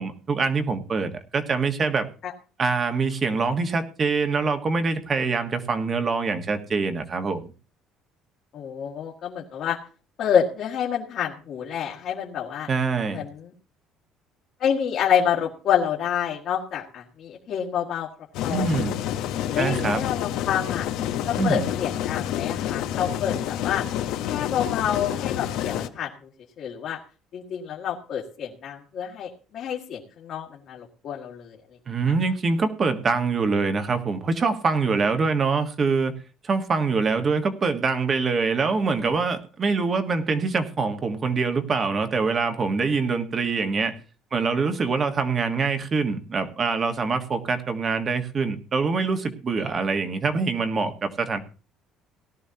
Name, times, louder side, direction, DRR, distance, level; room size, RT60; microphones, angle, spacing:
voice 1, 0.0-2.1 2.6-7.5 12.7-13.2 18.5-19.0 19.5-20.0 21.4-21.7 31.9-36.1 36.4-43.9 44.3-51.4, right 4 dB, 30° right, 8 dB, 1.4 m, -24 dB
voice 2, 8.5-9.8 10.2-12.7 13.1-13.5 14.6-18.1 18.4-18.7 19.5-20.9 21.2-23.8 24.3-26.1 26.6-27.0 27.3-31.6, left 8 dB, 55° left, -2 dB, 1.8 m, -28 dB
sound 1, 18.3-25.9, left 11 dB, 75° left, 0.9 m, -28 dB
17.5 x 12.0 x 2.9 m, 0.36 s
cardioid pair, 130°, 0 cm